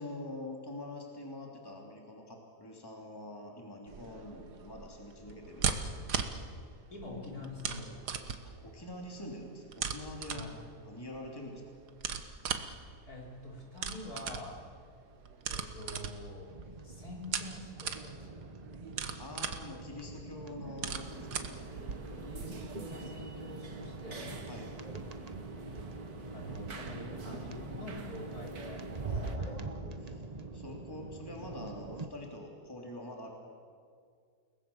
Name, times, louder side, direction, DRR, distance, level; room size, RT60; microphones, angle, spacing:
voice 1, 0.0-5.8 8.4-10.4 10.8-11.6 19.2-21.6 24.5-24.7 29.0-30.2 30.5-33.3, left 1 dB, 15° left, 0 dB, 3.2 m, -45 dB
sound 1, 3.9-22.4, right 6 dB, 85° right, 1.9 m, -40 dB
voice 2, 6.9-8.2 10.3-10.5 13.1-14.5 15.5-16.5 16.8-18.5 22.1-24.4 26.3-29.7, left 1 dB, 65° left, -2 dB, 5.3 m, -46 dB
sound 2, 16.5-32.1, right 3 dB, 25° right, 1.1 m, -44 dB
sound 3, 20.8-29.4, right 2 dB, 65° right, 2.3 m, -47 dB
30.0 x 19.5 x 7.2 m, 2.1 s
omnidirectional pair, 1.7 m